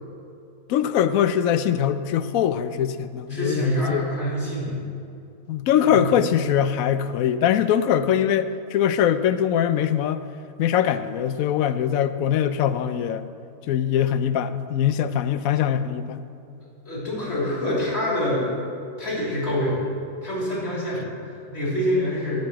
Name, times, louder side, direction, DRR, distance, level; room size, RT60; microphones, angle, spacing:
voice 1, 0.7-4.2 5.5-10.2 10.6-13.3 13.7-16.3, left 9 dB, 75° left, 12 dB, 1.0 m, -22 dB
voice 2, 3.3-4.8 5.9-6.2 16.9-18.5 19.0-19.9 20.2-22.4, equal, 45° left, -6 dB, 3.5 m, -26 dB
13.5 x 5.3 x 7.6 m, 2.5 s
omnidirectional pair, 1.5 m